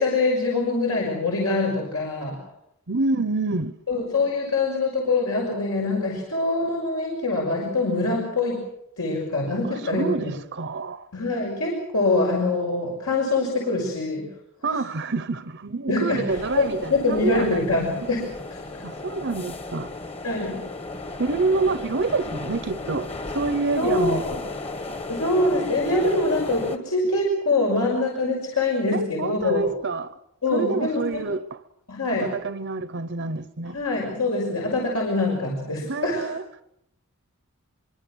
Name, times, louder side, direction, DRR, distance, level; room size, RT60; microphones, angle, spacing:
voice 1, 0.0-2.4 3.9-8.6 9.0-10.3 11.1-14.3 14.7-14.8 15.9-16.3 16.6-18.8 20.2-20.6 23.8-24.4 25.1-29.7 30.4-31.2 31.9-32.3 33.7-36.3, left 2 dB, 80° left, 6.1 m, -24 dB
voice 2, 2.9-3.7 9.7-11.1 14.6-18.1 18.8-19.9 21.2-23.1 23.3-24.2 28.9-30.1 30.5-31.6 32.2-33.8 35.9-36.6, right 3 dB, 55° right, 0.9 m, -27 dB
sound 1, 16.3-26.8, left 2 dB, 25° left, 1.5 m, -35 dB
25.0 x 23.5 x 6.3 m
head